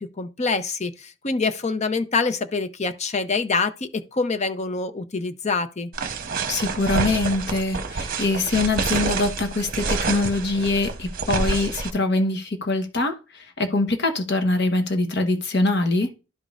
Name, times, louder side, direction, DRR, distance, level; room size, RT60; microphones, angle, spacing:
voice 1, 0.0-5.9, left 4 dB, 35° left, 0.6 m, -25 dB
sound 1, 5.9-11.9, right 4 dB, 45° right, 0.9 m, -28 dB
voice 2, 6.5-16.1, left 2 dB, 60° left, 1.1 m, -23 dB
12.0 x 5.2 x 2.5 m
head